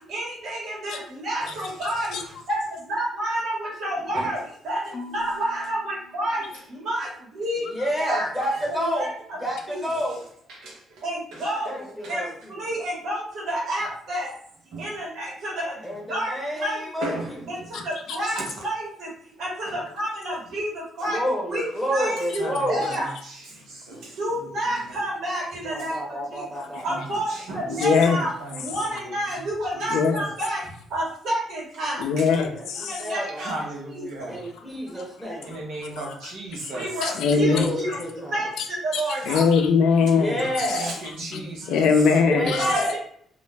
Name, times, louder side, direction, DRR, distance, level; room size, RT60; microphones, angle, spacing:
voice 1, 0.1-2.2 2.5-4.4 4.6-6.4 6.7-7.7 8.0-8.3 8.7-9.1 9.7-9.8 11.0-11.8 12.1-14.4 14.8-17.1 17.5-19.1 19.4-21.2 21.5-23.1 24.2-26.4 26.8-28.3 28.6-30.6 30.9-32.1 32.8-33.5 33.9-34.4 36.7-37.9 38.3-39.5 42.4-43.0, right 1 dB, 70° right, -4 dB, 1.2 m, -29 dB
Marimba xylophone / Wood, 4.9-7.1, left 4 dB, 30° left, 0.5 m, -44 dB
voice 2, 7.7-9.1 9.4-10.2 11.7-12.5 15.8-17.3 21.0-23.0 25.7-27.2 32.5-33.4 34.3-35.6 37.4-38.5 40.2-40.9 42.3-43.0, equal, ahead, -3 dB, 0.8 m, -29 dB
voice 3, 10.5-10.8 11.3-11.4 12.0-12.1 14.7-14.9 17.0-17.7 18.2-18.3 19.7-19.8 22.4-24.2 26.7-27.0 27.3-27.7 28.1-28.6 29.0-29.4 32.2-32.3 33.4-34.4 35.4-36.9 40.7-41.9, right 2 dB, 85° right, -1 dB, 0.8 m, -36 dB
voice 4, 27.8-28.2 29.9-30.2 32.0-33.0 35.0-35.1 36.0-36.3 36.6-36.7 37.0-38.0 38.6-38.7 38.9-40.8 41.3-42.7, left 5 dB, 85° left, 4 dB, 0.4 m, -22 dB
2.5 x 2.0 x 3.3 m, 0.63 s
cardioid pair, 90°, 0 cm